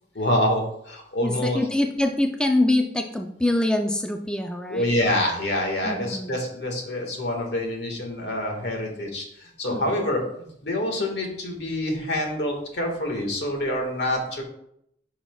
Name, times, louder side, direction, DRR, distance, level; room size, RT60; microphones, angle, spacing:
voice 1, 0.1-1.6 4.7-14.4, left 1 dB, 75° left, 2 dB, 1.7 m, -26 dB
voice 2, 1.2-4.9 5.8-6.3 9.7-10.0, left 1 dB, 5° left, 4 dB, 0.4 m, -24 dB
10.0 x 5.7 x 2.3 m, 0.75 s
head